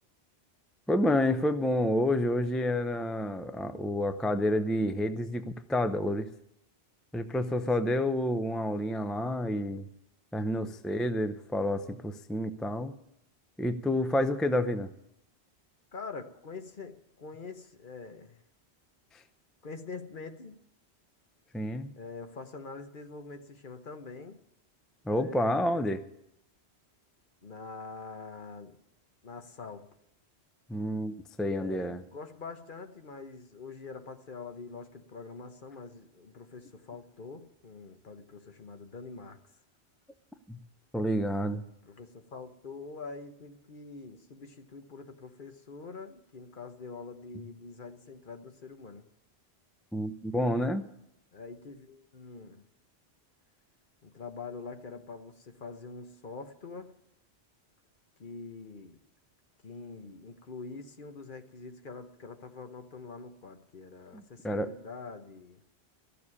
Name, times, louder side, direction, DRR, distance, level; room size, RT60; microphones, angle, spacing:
voice 1, 0.9-6.3 7.1-9.9 10.3-13.0 13.6-14.9 21.5-21.9 25.1-26.0 30.7-32.0 40.5-40.6 40.9-41.6 49.9-50.8 64.1-64.7, left 1 dB, ahead, 0.4 m, -29 dB
voice 2, 7.4-8.0 10.5-10.8 15.9-18.4 19.6-20.6 22.0-24.4 25.2-25.8 27.4-28.8 29.2-29.9 31.5-39.4 41.8-49.1 51.3-52.6 54.0-56.9 58.2-59.0 59.6-65.6, left 4 dB, 50° left, 1.2 m, -45 dB
14.0 x 7.0 x 9.8 m
omnidirectional pair, 1.1 m